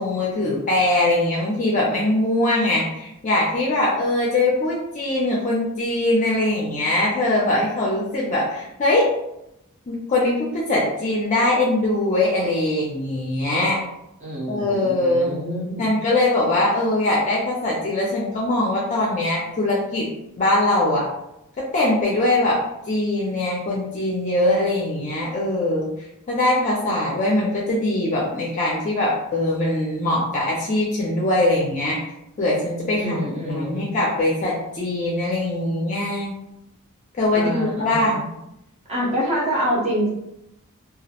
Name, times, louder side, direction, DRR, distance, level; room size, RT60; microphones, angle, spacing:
voice 1, 0.0-9.1 9.9-13.8 14.5-15.3 15.8-20.1 20.4-21.1 21.7-22.6 22.9-25.9 26.3-32.0 32.4-33.2 33.5-36.3 37.2-38.2, left 1 dB, 35° left, -4 dB, 0.4 m, -22 dB
voice 2, 14.2-15.9 32.9-33.9 37.3-38.2 38.9-40.1, equal, 30° right, -6 dB, 0.8 m, -26 dB
2.3 x 2.0 x 2.8 m, 0.85 s
head